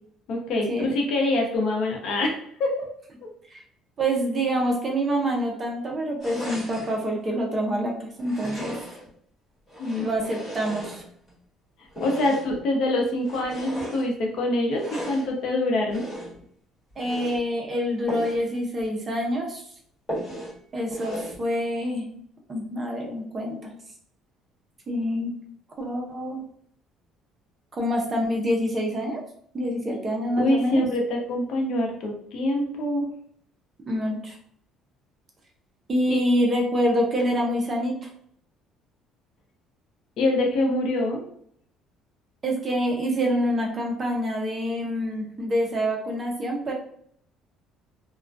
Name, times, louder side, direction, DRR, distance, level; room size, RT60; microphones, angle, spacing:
voice 1, 0.3-2.7 9.8-10.1 12.0-16.0 30.4-33.1 36.1-36.2 40.2-41.2, left 2 dB, 60° left, 1 dB, 0.7 m, -25 dB
voice 2, 4.0-8.7 10.0-11.0 17.0-19.6 20.7-22.1 22.5-23.7 24.9-25.3 25.8-26.4 27.8-29.2 29.5-30.8 33.9-34.4 35.9-38.1 42.4-46.7, equal, 25° right, 0 dB, 0.5 m, -26 dB
sound 1, 6.2-7.0 8.2-9.1 9.7-11.3 11.9-12.6 13.2-14.1 14.7-15.3 15.9-16.4 16.9-17.4 18.1-18.4 18.8-18.9 19.3-19.4 20.1-20.6 20.9-21.4, equal, 15° left, 1.3 m, -36 dB
2.4 x 2.1 x 2.4 m, 0.64 s
cardioid pair, 145°, 0 cm